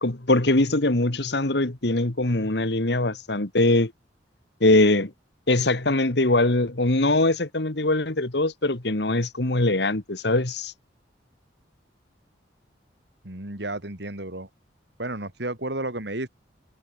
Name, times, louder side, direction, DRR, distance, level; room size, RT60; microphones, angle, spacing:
voice 1, 0.0-3.9 4.6-5.1 5.5-10.7, left 2 dB, 65° left, 1.8 m, -22 dB
voice 2, 13.2-14.5 15.0-16.3, right 2 dB, 65° right, 3.2 m, -32 dB
head